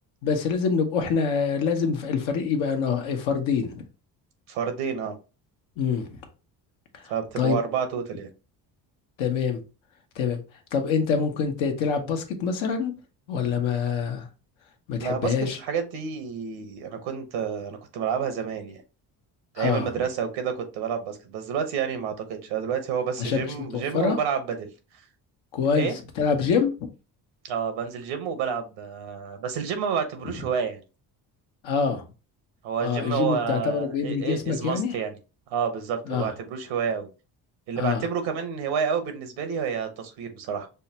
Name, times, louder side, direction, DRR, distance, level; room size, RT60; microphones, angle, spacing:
voice 1, 0.2-3.8 5.8-6.2 6.9-7.0 7.4-7.6 9.2-9.6 10.2-10.4 10.7-12.9 13.3-14.3 14.9-15.6 19.6-19.9 23.2-24.2 25.5-25.9 26.2-26.7 31.6-32.0 32.8-34.9 36.1-36.3 37.7-38.0, left 6 dB, 85° left, 0.9 m, -25 dB
voice 2, 4.5-5.2 7.1-8.3 15.0-18.8 19.5-24.7 25.7-25.9 27.5-30.8 32.6-35.2 35.5-37.1 37.7-40.7, right 7 dB, 85° right, 1.0 m, -29 dB
5.4 x 2.2 x 2.8 m
supercardioid pair, 65°, 46 cm